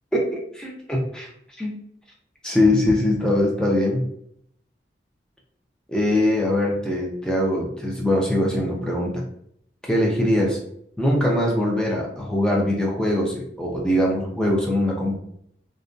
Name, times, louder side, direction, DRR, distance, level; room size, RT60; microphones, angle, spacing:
voice 1, 0.5-1.3 1.6-1.8 2.4-4.1 5.9-9.2 9.8-10.6 11.0-15.1, left 1 dB, 5° left, -2 dB, 0.5 m, -22 dB
2.5 x 2.2 x 2.4 m, 0.69 s
head